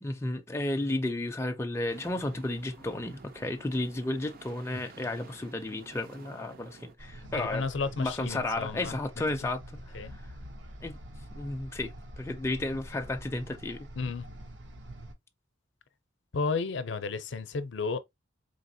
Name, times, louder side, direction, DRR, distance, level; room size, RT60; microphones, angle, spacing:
voice 1, 0.0-7.7 8.0-9.6 9.9-10.2 10.8-11.0 11.3-13.9, left 2 dB, 15° left, 0.4 m, -33 dB
sound 1, 1.9-7.0, right 4 dB, 50° right, 0.4 m, -52 dB
sound 2, 7.0-15.1, right 1 dB, 70° right, 0.8 m, -46 dB
voice 2, 7.4-9.0 9.9-10.1 14.0-14.3 16.3-18.0, left 4 dB, 65° left, 0.5 m, -32 dB
4.0 x 3.2 x 2.6 m
head